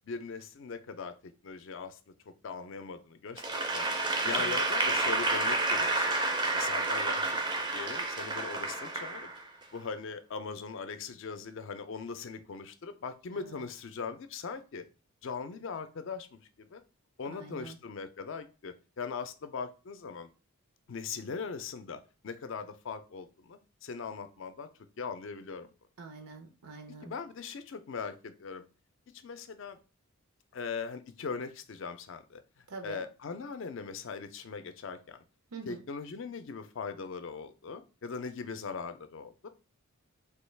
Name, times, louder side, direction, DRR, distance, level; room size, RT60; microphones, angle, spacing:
voice 1, 0.0-2.0 2.3-3.9 4.2-6.2 6.5-9.3 9.7-14.8 15.2-16.8 17.2-20.3 20.9-24.7 25.0-25.7 27.0-28.6 29.2-29.8 30.5-32.4 32.8-35.2 35.7-39.5, left 5 dB, 55° left, 10 dB, 0.4 m, -40 dB
Applause / Crowd, 3.4-9.6, right 2 dB, 20° right, 0.4 m, -30 dB
voice 2, 4.3-4.6 13.3-13.6 17.3-17.8 26.0-27.1 32.7-33.0 35.5-35.8, right 4 dB, 90° right, 5 dB, 0.6 m, -45 dB
3.4 x 2.3 x 3.2 m, 0.32 s
head